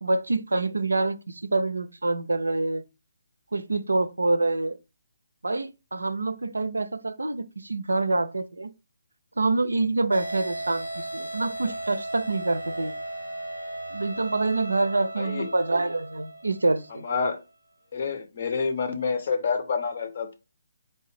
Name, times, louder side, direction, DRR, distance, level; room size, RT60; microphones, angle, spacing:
voice 1, 0.0-2.8 3.5-4.8 5.4-8.7 9.4-12.9 13.9-17.0, right 2 dB, 70° right, 0.4 m, -26 dB
sound 1, 10.1-17.0, right 1 dB, 80° left, 0.7 m, -36 dB
voice 2, 15.2-15.5 17.0-17.4 17.9-20.4, left 5 dB, 45° left, 0.7 m, -28 dB
4.4 x 2.7 x 3.2 m
figure-of-eight pair, 140°, 0 cm